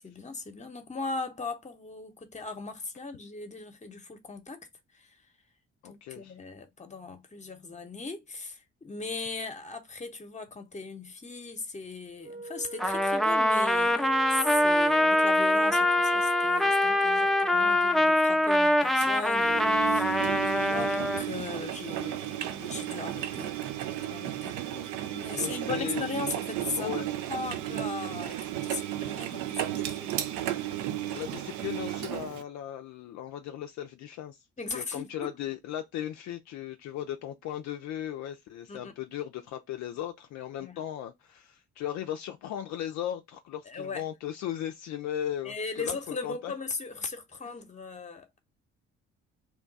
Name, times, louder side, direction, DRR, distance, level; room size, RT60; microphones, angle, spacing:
voice 1, 0.0-4.6 4.9-5.2 5.8-23.5 24.1-24.6 24.8-30.5 34.6-35.3 38.7-38.9 40.6-40.8 43.6-44.0 45.4-48.4, left 4 dB, 20° left, 0.9 m, -38 dB
voice 2, 5.8-6.3 24.7-24.9 25.3-26.1 26.8-27.1 31.0-34.4 34.7-46.5 47.5-47.6, left 11 dB, 60° left, 0.5 m, -37 dB
Wind instrument woodwind instrument, 12.2-17.8, right 2 dB, 20° right, 0.8 m, -42 dB
Trumpet, 12.8-21.2, left 1 dB, ahead, 0.4 m, -24 dB
Engine, 19.0-32.4, right 13 dB, 70° right, 0.5 m, -34 dB
2.9 x 2.2 x 3.9 m
hypercardioid pair, 50°, 32 cm